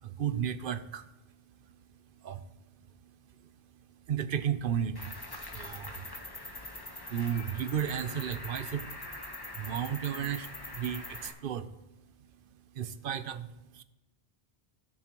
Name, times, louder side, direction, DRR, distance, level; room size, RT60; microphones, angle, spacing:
voice 1, 0.0-1.1 2.2-2.5 3.4-3.5 4.1-5.1 5.5-6.1 7.1-8.9 9.5-11.8 12.7-13.8, right 9 dB, 65° right, 12 dB, 0.8 m, -34 dB
Cricket, 5.0-11.3, left 2 dB, 25° left, 1.2 m, -43 dB
16.5 x 6.6 x 3.0 m, 1.0 s
omnidirectional pair, 1.0 m